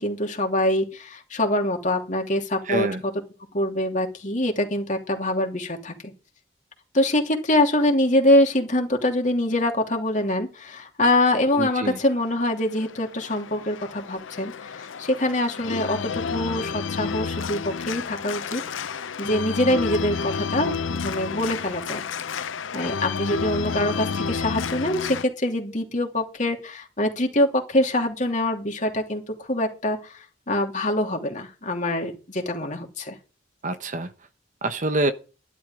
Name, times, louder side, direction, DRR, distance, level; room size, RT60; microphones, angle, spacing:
voice 1, 0.0-3.1 3.5-5.9 6.9-22.0 22.3-33.1, left 1 dB, 40° left, 2.9 m, -24 dB
voice 2, 2.7-3.0 11.5-12.0 33.6-34.1 34.6-35.1, right 2 dB, 40° right, 1.1 m, -26 dB
Organ, 12.1-25.2, left 5 dB, 85° left, 0.6 m, -31 dB
12.0 x 11.5 x 3.8 m
head